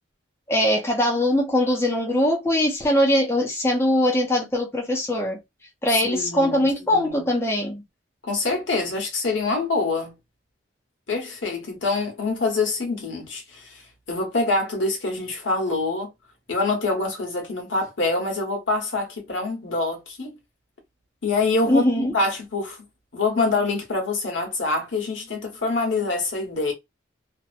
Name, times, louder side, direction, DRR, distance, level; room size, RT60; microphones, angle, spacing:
voice 1, 0.5-5.4 5.8-7.8 21.7-22.1, left 1 dB, 10° left, 0.5 m, -21 dB
voice 2, 5.9-7.3 8.2-10.2 11.1-13.8 14.1-16.1 16.5-20.3 21.2-22.9 23.1-26.7, left 3 dB, 70° left, 1.1 m, -25 dB
2.7 x 2.0 x 2.4 m
head